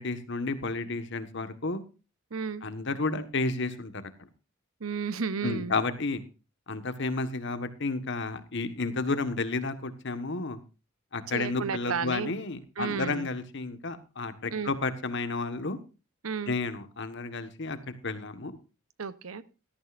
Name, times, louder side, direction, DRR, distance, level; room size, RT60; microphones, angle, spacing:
voice 1, 0.0-1.8 2.6-3.9 5.4-6.2 6.7-10.6 11.1-15.8 16.5-18.6, left 3 dB, 60° left, 1.4 m, -31 dB
voice 2, 2.3-2.6 4.8-5.8 11.3-12.3 12.8-13.3 14.5-14.7 16.2-16.5 19.0-19.4, right 5 dB, 85° right, 0.9 m, -32 dB
17.5 x 13.0 x 2.5 m
head